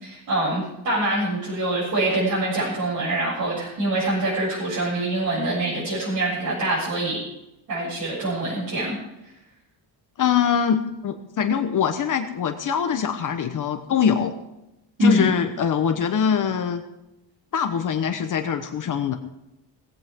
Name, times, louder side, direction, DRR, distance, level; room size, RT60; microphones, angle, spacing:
voice 1, 0.0-7.2 7.7-8.9 15.0-15.3, right 1 dB, 50° right, -7 dB, 7.6 m, -24 dB
voice 2, 10.2-14.3 15.0-16.8 17.5-19.2, left 7 dB, 45° left, 6 dB, 1.2 m, -23 dB
18.5 x 16.0 x 3.8 m, 0.90 s
cardioid pair, 165°, 43 cm